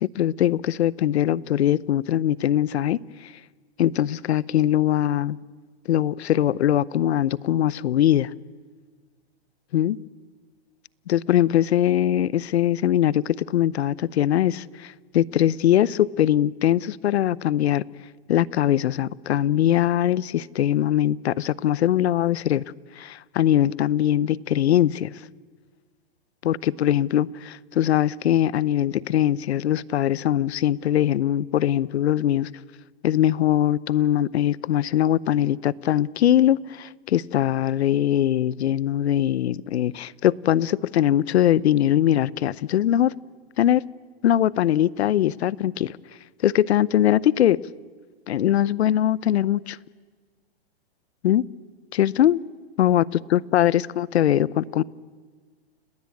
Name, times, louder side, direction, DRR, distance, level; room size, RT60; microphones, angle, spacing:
voice 1, 0.0-3.3 3.8-5.4 5.9-8.3 9.7-10.0 11.1-17.8 18.3-22.6 23.0-25.1 26.4-32.5 33.0-43.1 43.6-43.8 44.2-46.0 46.4-47.6 48.3-49.8 51.2-51.4 51.9-52.4 52.8-53.0 53.3-54.8, left 11 dB, 80° left, 0.8 m, -21 dB
29.5 x 19.0 x 8.5 m
hypercardioid pair, 145°, 32 cm